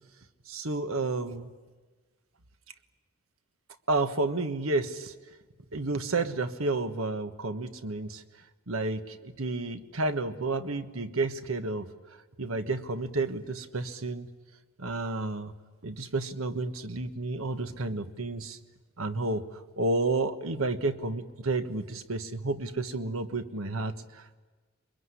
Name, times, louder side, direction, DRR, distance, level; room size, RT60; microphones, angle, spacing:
voice 1, 0.5-1.5 3.9-5.1 5.7-8.2 8.7-11.9 12.4-14.3 14.8-15.5 15.8-18.6 19.0-19.4 19.8-24.4, right 3 dB, 90° right, 9 dB, 1.4 m, -31 dB
24.0 x 22.0 x 9.8 m, 1.3 s
head